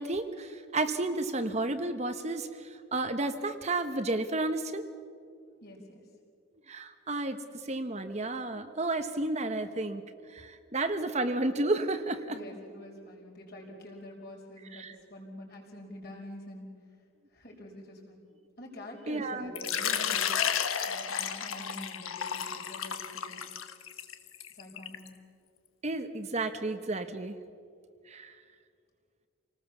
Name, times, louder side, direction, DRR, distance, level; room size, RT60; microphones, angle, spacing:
voice 1, 0.0-4.8 6.7-10.0 10.3-12.4 14.7-15.0 19.1-19.5 25.8-27.4 28.1-28.4, right 2 dB, 35° right, 8 dB, 1.0 m, -32 dB
voice 2, 5.6-6.0 12.3-16.7 17.3-18.3 18.6-20.3 20.9-23.6 24.5-25.1, left 1 dB, 50° left, -1 dB, 5.0 m, -46 dB
Water / Liquid, 19.6-25.1, left 8 dB, 90° left, 1.3 m, -32 dB
28.0 x 19.0 x 7.0 m, 2.3 s
head